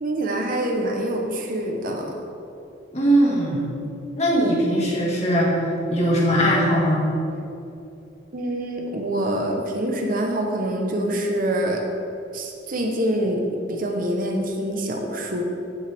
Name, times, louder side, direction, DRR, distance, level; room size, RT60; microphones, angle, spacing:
voice 1, 0.0-2.1 8.3-11.9 12.3-15.4, right 1 dB, 45° right, 2 dB, 0.9 m, -25 dB
voice 2, 2.9-3.7 4.2-5.6 5.9-7.1, equal, 35° left, -4 dB, 1.8 m, -20 dB
15.0 x 5.9 x 3.5 m, 2.7 s
head